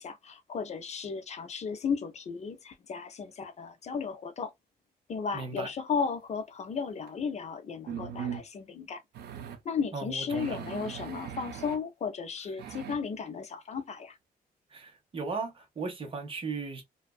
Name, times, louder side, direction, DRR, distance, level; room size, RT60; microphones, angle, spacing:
voice 1, 0.0-4.5 5.1-9.0 9.6-14.2, left 6 dB, 45° left, 0.5 m, -35 dB
voice 2, 5.3-5.7 9.9-10.6 14.7-16.8, right 4 dB, 35° right, 0.8 m, -36 dB
sound 1, 7.1-7.2 7.9-8.4 9.1-9.6 10.3-11.8 12.6-13.0, right 8 dB, 85° right, 0.4 m, -39 dB
2.5 x 2.2 x 2.2 m
cardioid pair, 140°, 16 cm